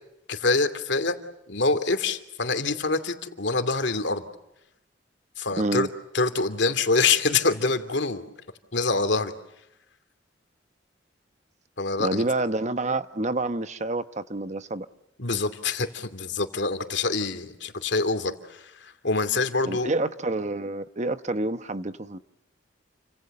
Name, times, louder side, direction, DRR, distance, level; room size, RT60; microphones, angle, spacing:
voice 1, 0.3-1.2 1.5-4.3 5.4-5.9 6.1-8.3 8.7-9.3 11.8-12.2 15.2-19.9, left 3 dB, 65° left, 2.7 m, -25 dB
voice 2, 5.6-5.9 12.0-14.9 19.7-22.2, right 2 dB, 40° right, 1.0 m, -28 dB
30.0 x 26.0 x 6.8 m
head